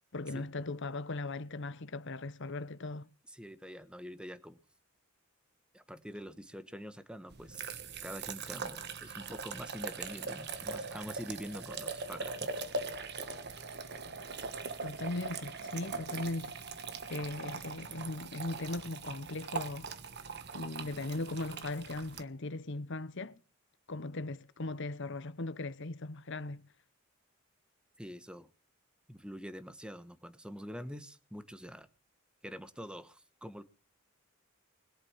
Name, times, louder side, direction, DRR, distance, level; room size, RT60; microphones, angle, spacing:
voice 1, 0.1-3.1 14.8-16.5 17.1-19.9 20.5-23.4 23.9-26.6, left 2 dB, 60° left, 1.0 m, -38 dB
voice 2, 3.3-4.6 5.7-7.6 8.0-12.5 28.0-28.5 29.1-31.9 32.4-33.6, equal, 5° right, 1.2 m, -45 dB
sound 1, 7.3-22.2, right 4 dB, 50° right, 1.4 m, -41 dB
21.5 x 8.0 x 7.3 m
head